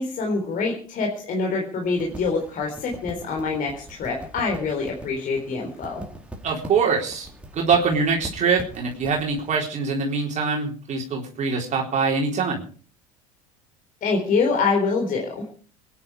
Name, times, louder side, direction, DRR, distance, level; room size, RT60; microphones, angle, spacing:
voice 1, 0.0-6.0 14.0-15.4, left 4 dB, 50° left, 1 dB, 4.0 m, -25 dB
sound 1, 1.8-9.6, right 1 dB, 5° right, 4.4 m, -42 dB
voice 2, 6.4-7.3 7.5-12.6, right 5 dB, 40° right, -1 dB, 4.1 m, -23 dB
24.0 x 10.5 x 4.9 m, 0.41 s
hypercardioid pair, 75°, 18 cm